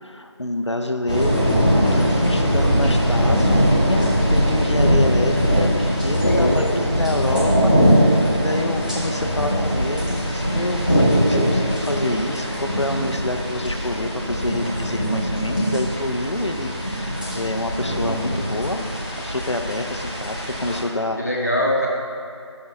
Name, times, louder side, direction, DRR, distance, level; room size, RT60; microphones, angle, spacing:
voice 1, 0.0-1.5 1.9-4.0 4.3-18.9 19.2-21.4, left 1 dB, 75° left, 5 dB, 0.9 m, -27 dB
sound 1, 1.1-20.8, equal, 15° right, 0.9 m, -21 dB
sound 2, 1.1-5.8 6.1-6.2, right 2 dB, 55° right, 0.5 m, -30 dB
voice 2, 6.2-6.8 21.2-21.9, equal, 35° left, -3 dB, 1.4 m, -22 dB
16.0 x 6.4 x 3.1 m, 2.5 s
figure-of-eight pair, 175°, 15 cm